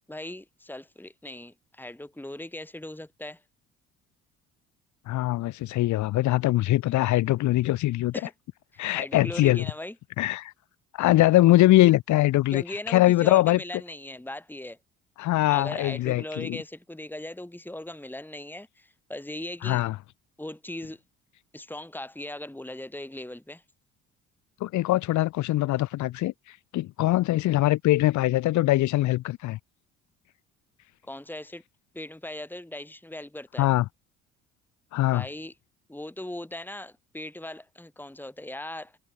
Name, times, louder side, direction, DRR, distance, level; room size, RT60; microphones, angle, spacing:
voice 1, 0.1-3.4 8.1-8.3 8.7-9.9 12.5-14.8 15.5-19.8 20.4-21.0 21.5-23.6 31.1-31.6 31.9-33.7 35.1-35.5 35.9-39.0, left 1 dB, 5° left, 3.2 m, -39 dB
voice 2, 5.1-8.1 8.8-9.7 10.2-10.5 10.9-13.6 15.2-16.6 19.6-19.9 24.6-26.3 26.7-29.6 33.6-33.8 34.9-35.2, left 16 dB, 55° left, 0.7 m, -22 dB
hypercardioid pair, 50°, 36 cm